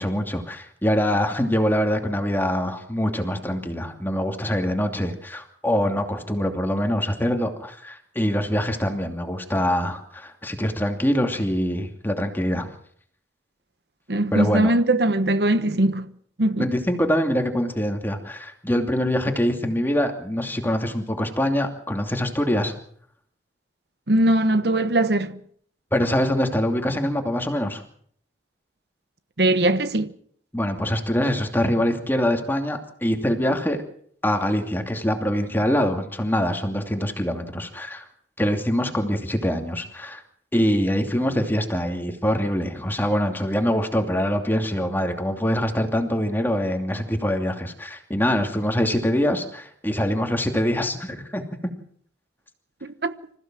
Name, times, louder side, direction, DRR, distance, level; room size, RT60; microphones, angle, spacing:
voice 1, 0.0-12.7 14.3-14.7 16.6-22.7 25.9-27.8 30.5-33.8 34.2-38.1 38.4-40.2 40.5-51.4, equal, 10° left, 2.7 m, -24 dB
voice 2, 14.1-16.1 16.4-16.7 24.1-25.4 29.4-30.1 52.8-53.1, right 1 dB, 65° right, 1.2 m, -20 dB
26.5 x 15.5 x 7.6 m
head